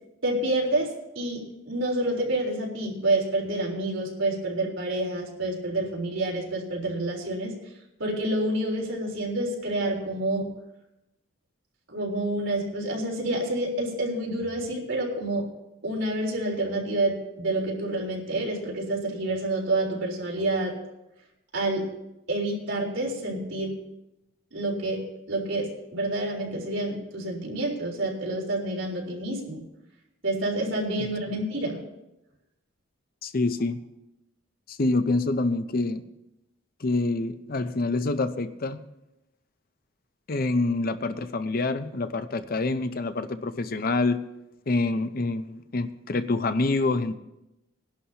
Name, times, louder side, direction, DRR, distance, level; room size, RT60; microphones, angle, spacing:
voice 1, 0.2-7.5 8.0-10.5 11.9-15.5 15.8-20.8 21.5-21.9 22.3-23.7 24.5-25.0 25.3-29.6 30.2-31.8, right 1 dB, 70° right, -1 dB, 3.7 m, -28 dB
voice 2, 33.2-33.8 34.7-36.0 36.8-38.8 40.3-44.2 44.7-47.2, left 3 dB, 45° left, 11 dB, 0.6 m, -26 dB
21.5 x 11.0 x 2.9 m, 0.91 s
head